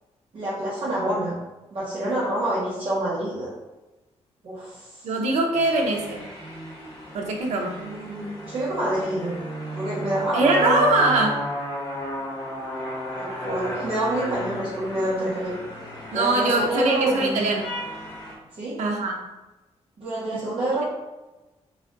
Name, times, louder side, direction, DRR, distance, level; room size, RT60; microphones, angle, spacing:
voice 1, 0.3-1.4 1.7-3.5 4.4-4.9 7.7-9.4 9.7-10.8 13.2-15.5 16.1-17.5 18.6-18.8 20.0-20.8, right 1 dB, 50° right, -10 dB, 1.3 m, -27 dB
voice 2, 5.0-6.3 7.1-7.8 10.3-11.4 13.3-13.4 16.1-17.7 18.8-19.2 20.3-20.4, right 2 dB, 85° right, 1 dB, 0.7 m, -22 dB
sound 1, 5.5-18.4, equal, 35° left, 1.4 m, -34 dB
3.9 x 2.5 x 3.8 m, 1.1 s
wide cardioid pair, 155°, 11 cm